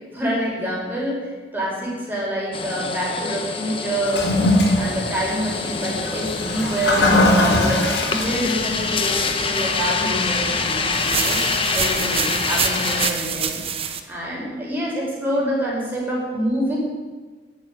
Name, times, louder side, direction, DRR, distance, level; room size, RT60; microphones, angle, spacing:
voice 1, 0.1-4.2 4.8-11.4 11.7-13.6 14.1-16.8, equal, 10° right, -5 dB, 5.7 m, -26 dB
sound 1, 2.5-13.1, left 4 dB, 30° left, 1.2 m, -26 dB
Toilet flush, 4.0-13.3, left 1 dB, 80° left, 4.1 m, -23 dB
sound 2, 10.9-14.0, right 7 dB, 30° right, 1.0 m, -26 dB
13.0 x 9.0 x 9.7 m, 1.4 s
head